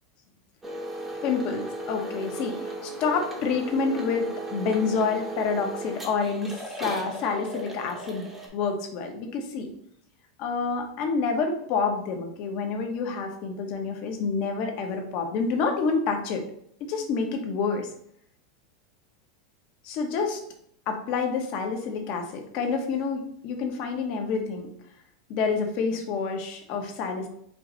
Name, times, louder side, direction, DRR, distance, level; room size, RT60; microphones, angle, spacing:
sound 1, 0.6-8.5, right 2 dB, 10° right, 0.8 m, -36 dB
voice 1, 1.2-9.7 10.4-16.4 16.8-17.9 19.8-20.4 20.9-24.7 25.3-27.3, left 5 dB, 45° left, 3 dB, 0.8 m, -28 dB
4.6 x 2.5 x 3.8 m, 0.68 s
supercardioid pair, 155°, 3 cm